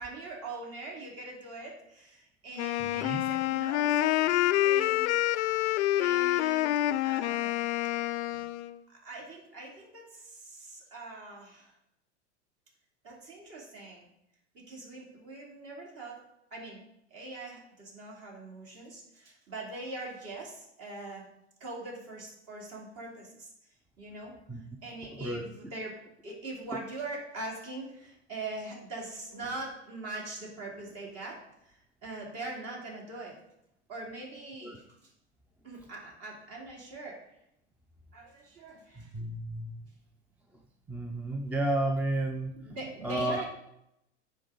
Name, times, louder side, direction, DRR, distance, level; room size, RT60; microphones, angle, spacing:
voice 1, 0.0-5.5 6.0-7.6 8.9-11.7 13.0-14.1 14.5-16.2 16.5-16.8 17.1-21.3 21.6-23.5 24.0-25.9 26.2-31.4 31.6-33.3 33.9-35.1 35.6-37.2 38.1-39.1 42.6-43.4, right 2 dB, 45° right, -2 dB, 2.9 m, -42 dB
Wind instrument woodwind instrument, 2.6-8.8, left 14 dB, 70° left, 0.5 m, -27 dB
voice 2, 2.8-3.2 24.5-24.6 25.1-25.4 34.6-34.8 39.0-39.8 40.9-42.5 43.0-43.4, right 1 dB, 5° right, 3 dB, 0.5 m, -32 dB
9.7 x 3.9 x 3.9 m, 0.81 s
hypercardioid pair, 95°, 35 cm